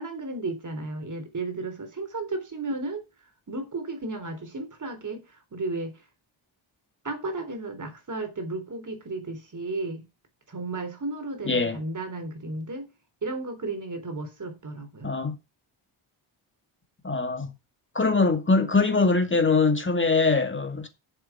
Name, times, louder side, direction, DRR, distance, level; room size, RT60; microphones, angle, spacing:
voice 1, 0.0-3.0 3.5-5.2 5.5-5.9 7.0-10.0 10.5-12.9 13.2-15.1, right 2 dB, 40° right, 3.7 m, -33 dB
voice 2, 11.4-11.8 15.0-15.4 17.0-17.5 17.9-20.9, left 3 dB, 25° left, 2.3 m, -22 dB
7.6 x 7.2 x 5.9 m
cardioid pair, 65°, 48 cm